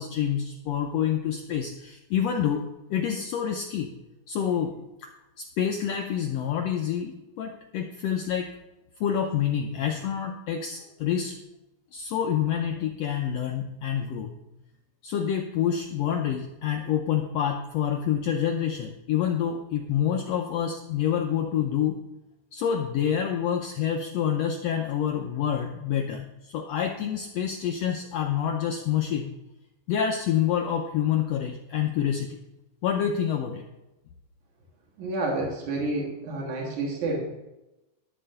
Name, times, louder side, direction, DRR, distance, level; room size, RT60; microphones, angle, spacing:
voice 1, 0.0-2.6 2.9-4.0 4.3-4.7 5.0-5.1 5.4-8.5 9.0-11.3 11.9-14.3 15.0-22.0 22.5-29.3 29.9-32.4 32.8-33.6, left 9 dB, 75° left, 3 dB, 1.5 m, -27 dB
voice 2, 35.0-37.3, right 2 dB, 70° right, -2 dB, 3.2 m, -29 dB
12.5 x 4.3 x 6.5 m, 0.97 s
omnidirectional pair, 3.6 m